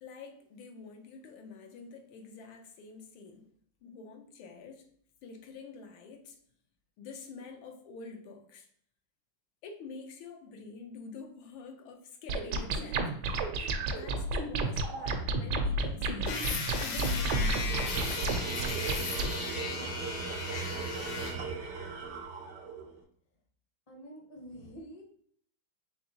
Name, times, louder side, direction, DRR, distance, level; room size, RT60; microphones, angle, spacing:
voice 1, 0.0-3.5 3.8-4.9 5.2-6.4 7.0-8.7 9.6-16.4 16.8-18.9 19.5-20.6, left 4 dB, 85° left, 1.6 m, -47 dB
sound 1, 12.3-19.3, right 2 dB, 70° right, 1.1 m, -31 dB
sound 2, 16.3-21.4, left 4 dB, 65° left, 1.1 m, -37 dB
Tools, 17.6-23.0, right 5 dB, 90° right, 0.6 m, -38 dB
voice 2, 23.9-25.0, right 1 dB, 40° left, 0.4 m, -47 dB
4.2 x 3.4 x 2.8 m
omnidirectional pair, 2.2 m